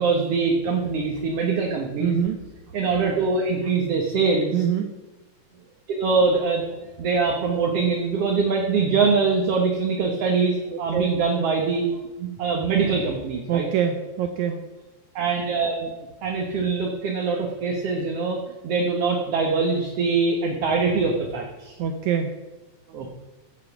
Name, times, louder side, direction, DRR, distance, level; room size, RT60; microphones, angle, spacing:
voice 1, 0.0-2.1 2.7-4.6 5.9-6.7 7.0-11.8 12.2-13.7 15.2-15.9 16.2-18.4 18.6-21.7 22.9-23.1, right 4 dB, 60° right, 1 dB, 2.1 m, -23 dB
voice 2, 2.0-2.4 4.5-4.9 10.7-11.1 13.5-14.6 21.8-22.3, right 8 dB, 75° right, 6 dB, 2.0 m, -24 dB
15.5 x 7.5 x 6.0 m, 1.1 s
omnidirectional pair, 3.6 m